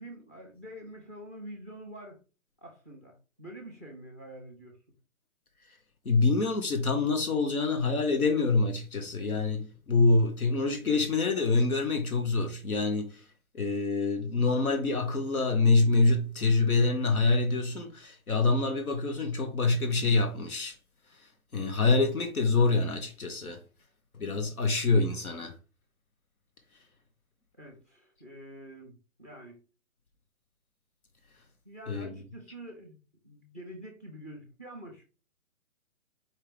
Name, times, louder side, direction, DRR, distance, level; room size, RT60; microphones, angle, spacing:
voice 1, 0.0-2.2 2.6-4.8 27.6-29.6 31.6-35.0, right 1 dB, 10° left, 0.5 m, -46 dB
voice 2, 6.0-13.3 13.5-20.8 21.1-23.6 24.1-25.5 31.9-32.2, left 3 dB, 90° left, 1.2 m, -26 dB
4.6 x 3.4 x 3.4 m
hypercardioid pair, 150°, 42 cm